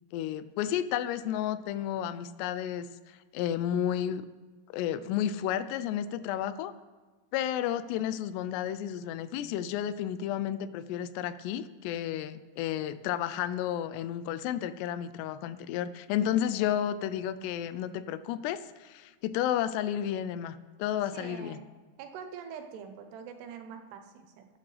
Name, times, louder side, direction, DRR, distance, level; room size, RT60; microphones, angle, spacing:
voice 1, 0.1-4.3 4.7-6.7 7.3-21.6, left 10 dB, 90° left, 13 dB, 2.7 m, -32 dB
voice 2, 16.5-16.9 21.1-21.7 22.0-24.5, right 7 dB, 80° right, 6 dB, 3.0 m, -44 dB
21.0 x 9.5 x 3.3 m, 1.3 s
omnidirectional pair, 4.8 m